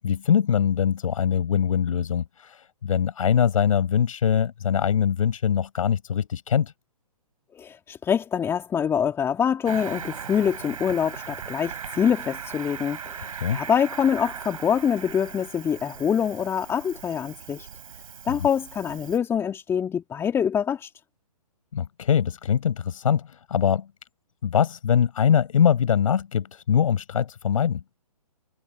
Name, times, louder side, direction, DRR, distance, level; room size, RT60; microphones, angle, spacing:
voice 1, 0.0-6.7 13.4-13.6 21.7-23.9 24.4-27.8, left 8 dB, 60° left, 6.3 m, -23 dB
voice 2, 7.5-17.7 18.3-20.9, left 8 dB, 15° left, 2.4 m, -25 dB
Cricket, 9.6-19.2, right 7 dB, 60° right, 5.8 m, -38 dB
figure-of-eight pair, 130°, 20 cm